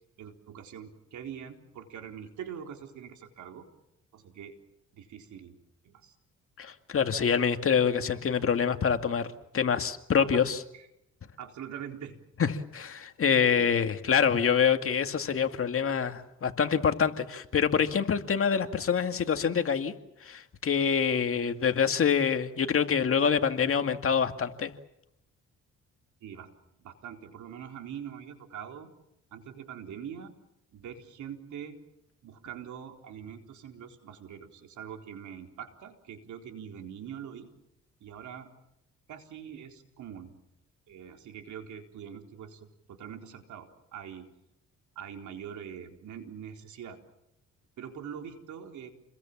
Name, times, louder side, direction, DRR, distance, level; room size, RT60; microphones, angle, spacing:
voice 1, 0.2-3.7 4.1-4.5 4.9-5.6 5.8-6.1 10.2-10.4 10.7-10.9 11.4-12.5 13.6-13.7 26.2-26.5 26.8-28.9 29.3-30.3 30.7-31.8 32.2-37.5 38.0-38.5 39.1-40.4 40.9-44.3 45.0-47.0 47.8-48.9, right 8 dB, 75° right, 4 dB, 4.1 m, -43 dB
voice 2, 6.6-9.3 9.5-10.6 12.4-19.9 20.2-24.7, left 7 dB, 45° left, 7 dB, 2.2 m, -26 dB
29.5 x 22.0 x 7.4 m, 0.84 s
cardioid pair, 90°, 30 cm